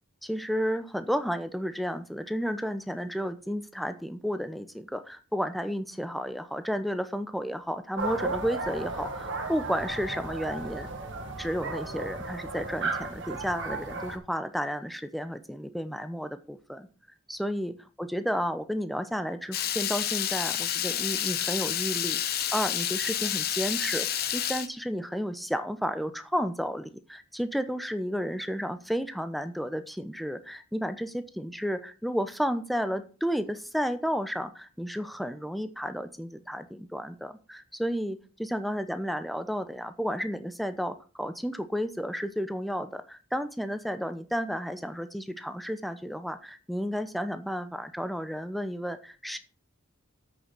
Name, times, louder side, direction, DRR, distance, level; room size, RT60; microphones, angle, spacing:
voice 1, 0.2-10.9 11.4-16.9 17.3-49.4, equal, ahead, 10 dB, 0.7 m, -32 dB
sound 1, 8.0-14.2, right 3 dB, 60° right, 1.8 m, -34 dB
Water tap faucet / Liquid, 19.5-24.7, left 10 dB, 45° left, 1.0 m, -29 dB
8.5 x 6.4 x 6.1 m, 0.37 s
head